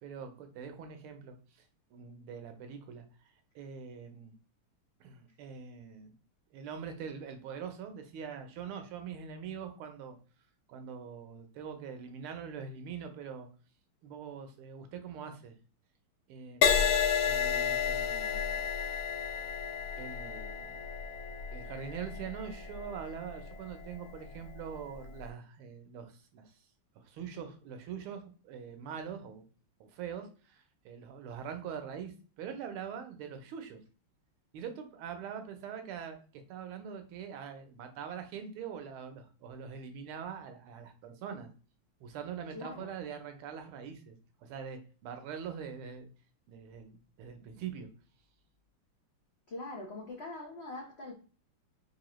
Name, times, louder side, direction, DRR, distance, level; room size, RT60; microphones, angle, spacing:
voice 1, 0.0-1.4 1.9-3.0 3.5-4.3 5.0-6.1 6.5-10.2 10.7-13.5 14.0-15.6 16.3-16.9 17.2-18.6 20.0-20.8 21.5-26.5 27.0-29.4 29.8-33.8 34.5-41.5 42.0-44.1 44.4-46.1 46.5-47.9, right 7 dB, 80° right, 1.6 m, -43 dB
Crash cymbal, 16.6-24.3 24.9-25.2, left 7 dB, 70° left, 1.3 m, -32 dB
voice 2, 42.5-42.9 49.5-51.1, left 2 dB, 90° left, 0.5 m, -42 dB
4.7 x 2.7 x 3.0 m
omnidirectional pair, 2.4 m